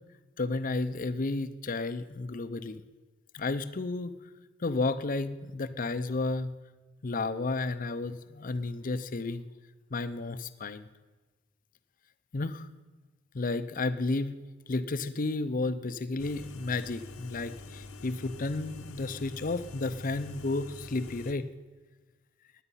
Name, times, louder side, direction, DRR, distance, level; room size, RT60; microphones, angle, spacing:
voice 1, 0.4-2.8 3.3-4.2 4.6-6.5 7.0-9.5 9.9-10.9 12.3-12.7 13.3-14.4 14.7-21.5, left 3 dB, 40° left, 13 dB, 0.6 m, -32 dB
sound 1, 16.2-21.3, left 2 dB, 75° left, 1.0 m, -46 dB
16.5 x 10.0 x 5.6 m, 1.2 s
head